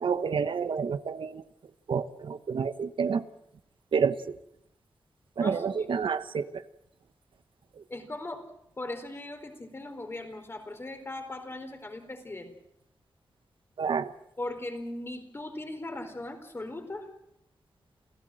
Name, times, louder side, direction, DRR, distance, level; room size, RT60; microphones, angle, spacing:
voice 1, 0.0-1.4 1.9-3.2 3.9-4.2 5.4-6.5 13.8-14.1, right 6 dB, 75° right, 11 dB, 1.1 m, -28 dB
voice 2, 7.9-8.4 8.8-12.5 14.4-17.0, left 2 dB, 30° left, 6 dB, 4.2 m, -38 dB
28.5 x 16.0 x 7.7 m, 0.81 s
wide cardioid pair, 120°, 9 cm